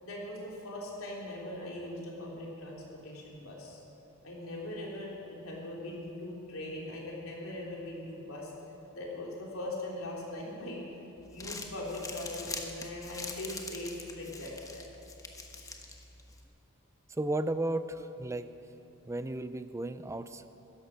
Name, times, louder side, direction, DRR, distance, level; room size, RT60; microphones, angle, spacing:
voice 1, 0.0-3.8 4.2-8.5 8.9-10.8 11.3-14.9, left 1 dB, 70° left, -3 dB, 3.5 m, -40 dB
Crumpling crinkling, 11.2-16.4, left 3 dB, 15° left, 1.1 m, -44 dB
voice 2, 17.1-18.5 19.1-20.5, right 2 dB, 15° right, 11 dB, 0.5 m, -34 dB
16.0 x 13.0 x 6.0 m, 2.9 s
head